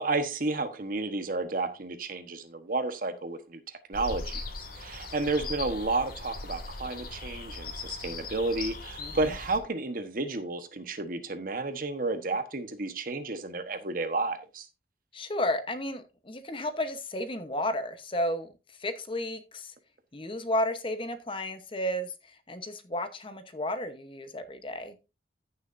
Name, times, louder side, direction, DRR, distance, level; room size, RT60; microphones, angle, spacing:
voice 1, 0.0-3.6 3.9-4.4 4.8-14.7, right 3 dB, 50° right, 1.2 m, -31 dB
sound 1, 3.9-9.6, left 3 dB, 55° left, 2.1 m, -39 dB
voice 2, 9.0-9.3 15.1-18.5 18.8-19.7 20.1-25.0, left 1 dB, 30° left, 1.0 m, -33 dB
15.0 x 6.7 x 2.6 m
head